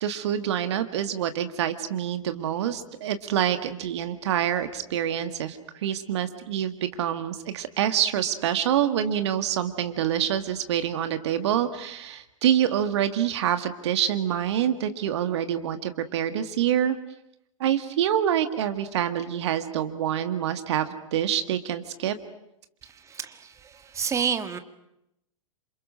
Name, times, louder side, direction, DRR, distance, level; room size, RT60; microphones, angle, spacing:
voice 1, 0.0-16.9 17.6-22.2, right 10 dB, 55° right, 10 dB, 1.6 m, -26 dB
voice 2, 23.1-24.6, right 7 dB, 15° right, 10 dB, 1.7 m, -29 dB
28.5 x 27.5 x 6.3 m, 0.81 s
figure-of-eight pair, 100°, 17 cm